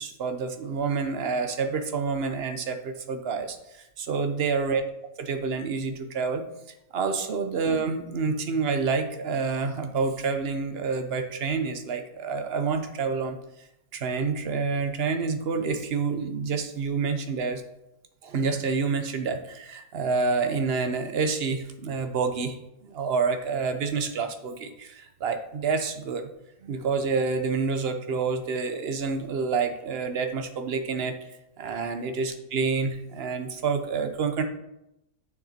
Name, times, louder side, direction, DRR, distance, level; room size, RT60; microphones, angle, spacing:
voice 1, 0.0-4.8 5.2-6.4 6.9-13.4 13.9-17.6 18.2-26.3 26.6-34.4, right 5 dB, 45° right, 7 dB, 0.9 m, -28 dB
8.7 x 6.8 x 4.3 m, 0.86 s
omnidirectional pair, 1.8 m